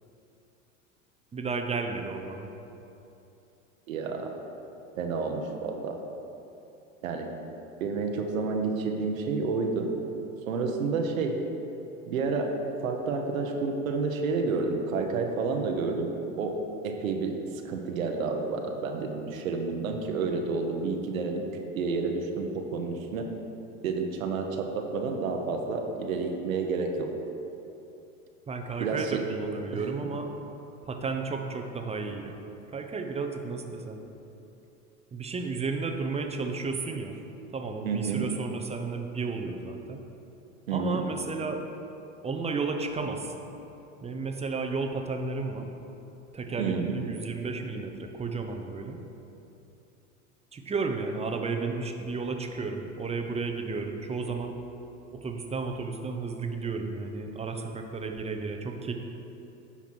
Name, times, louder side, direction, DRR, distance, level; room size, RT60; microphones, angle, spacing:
voice 1, 1.3-2.5 28.5-30.3 30.8-32.4 32.7-34.0 35.1-37.2 37.5-40.0 40.7-41.6 42.2-43.3 44.0-45.7 46.3-49.0 50.5-54.5 55.1-58.9, right 4 dB, 15° right, 4 dB, 0.8 m, -33 dB
voice 2, 3.9-4.3 5.0-6.0 7.0-7.3 7.8-9.9 10.5-11.4 12.1-12.5 12.8-16.1 16.4-16.6 16.8-17.4 17.6-21.4 21.8-23.3 23.8-27.1 28.8-29.2 29.7-29.9 37.8-38.3 40.7-41.1 46.6-47.0, right 4 dB, 85° right, 3 dB, 1.1 m, -30 dB
9.8 x 5.8 x 4.6 m, 2.9 s
hypercardioid pair, 100°, 40 cm